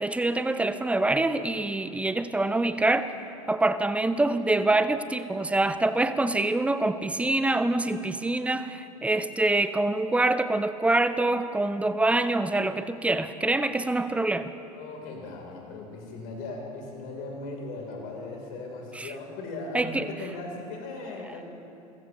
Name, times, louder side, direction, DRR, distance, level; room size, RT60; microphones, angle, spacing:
voice 1, 0.0-3.1 3.5-14.5 19.0-19.1 19.7-20.1, right 2 dB, 5° right, 12 dB, 0.6 m, -25 dB
voice 2, 14.7-21.4, left 2 dB, 50° left, 0 dB, 3.6 m, -38 dB
28.5 x 15.0 x 3.1 m, 2.8 s
figure-of-eight pair, 75°, 19 cm